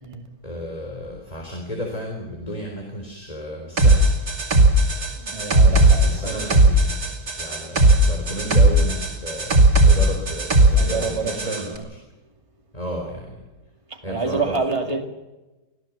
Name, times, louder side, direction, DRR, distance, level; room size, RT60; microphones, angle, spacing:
voice 1, 0.4-4.1 5.6-6.9 7.4-11.7 12.7-13.3 14.0-14.4, equal, 25° left, 4.0 m, -32 dB
sound 1, 3.8-11.6, right 1 dB, 65° right, 3.2 m, -17 dB
voice 2, 5.2-6.7 10.7-11.9 13.9-15.1, right 4 dB, 20° right, 2.2 m, -28 dB
25.5 x 16.0 x 7.3 m
omnidirectional pair, 1.7 m